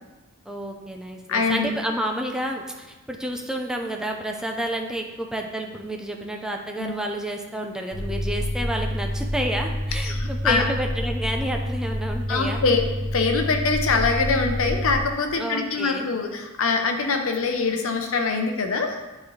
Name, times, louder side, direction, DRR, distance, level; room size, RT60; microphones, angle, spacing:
voice 1, 0.5-12.6 15.4-16.1, right 1 dB, 5° right, 2 dB, 0.6 m, -30 dB
voice 2, 1.3-1.7 6.8-6.9 10.0-10.6 12.3-12.8 13.1-19.0, left 4 dB, 70° left, 4 dB, 0.8 m, -23 dB
sound 1, 7.9-15.0, equal, 40° left, 1.1 m, -28 dB
9.4 x 4.1 x 3.3 m, 1.1 s
head